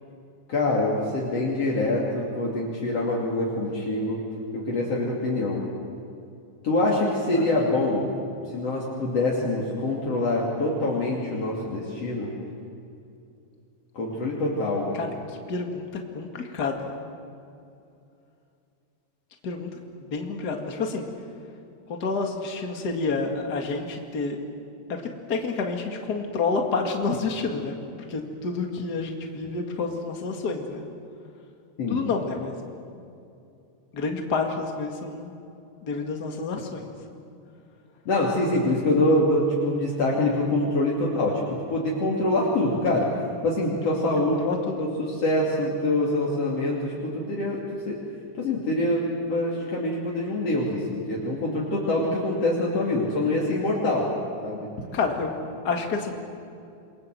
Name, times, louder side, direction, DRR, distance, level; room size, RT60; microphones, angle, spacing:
voice 1, 0.5-4.2 4.5-5.6 6.6-8.1 8.5-12.3 13.9-14.9 31.8-32.0 38.1-41.4 41.7-43.1 43.4-44.4 44.8-47.6 47.9-48.0 48.4-54.1 54.4-54.7, left 2 dB, 55° left, -4 dB, 3.8 m, -25 dB
voice 2, 15.5-15.9 16.1-16.9 19.4-19.7 20.1-21.1 21.9-24.4 25.3-27.8 28.1-30.8 31.9-32.5 33.9-35.3 35.8-36.9 44.0-44.1 44.4-44.9 54.9-55.4 55.6-56.1, left 4 dB, 35° left, 3 dB, 2.4 m, -29 dB
28.0 x 23.0 x 7.8 m, 2.6 s
omnidirectional pair, 3.5 m